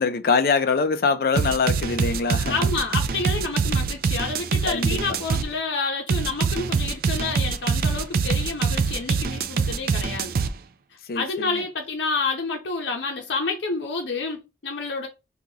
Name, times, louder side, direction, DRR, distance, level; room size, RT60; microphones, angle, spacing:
voice 1, 0.0-2.7 4.7-5.2 11.0-11.6, left 5 dB, 55° left, 0.4 m, -24 dB
sound 1, 1.4-5.5 6.1-10.5, right 5 dB, 55° right, 0.3 m, -24 dB
voice 2, 2.5-10.3 11.1-15.1, left 4 dB, 85° left, 0.7 m, -29 dB
2.8 x 2.4 x 3.9 m
head